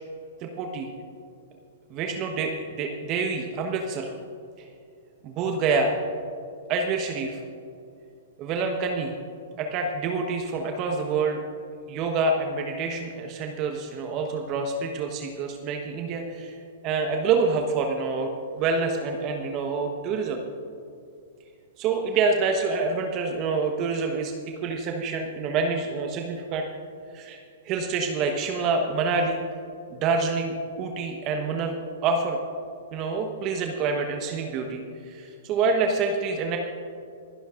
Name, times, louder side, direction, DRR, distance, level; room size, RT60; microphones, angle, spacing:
voice 1, 0.4-0.9 1.9-4.1 4.6-4.7 5.2-5.9 6.7-7.4 8.4-9.1 9.6-11.4 11.9-16.6 16.8-20.4 21.8-26.6 27.1-29.4 29.9-31.8 32.0-32.4 32.9-36.6, right 4 dB, 35° right, 3 dB, 1.2 m, -27 dB
27.5 x 11.0 x 2.6 m, 2.5 s
hypercardioid pair, 120°, 0 cm